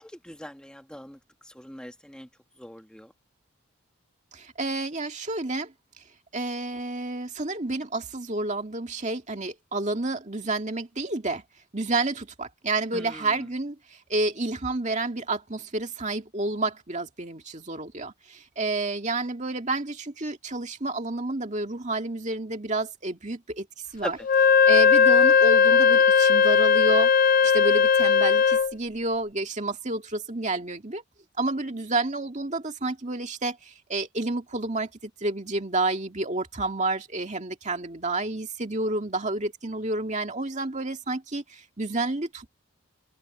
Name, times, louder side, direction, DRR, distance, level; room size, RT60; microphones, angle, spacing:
voice 1, 0.0-2.3 2.6-3.1 12.9-13.5 24.0-24.3, equal, 5° left, 1.3 m, -40 dB
voice 2, 4.3-5.7 6.3-11.4 11.7-23.7 23.9-24.2 24.7-27.1 27.4-31.0 31.4-42.5, right 2 dB, 35° right, 2.2 m, -30 dB
Wind instrument woodwind instrument, 24.2-28.7, left 6 dB, 40° left, 0.5 m, -18 dB
open air
head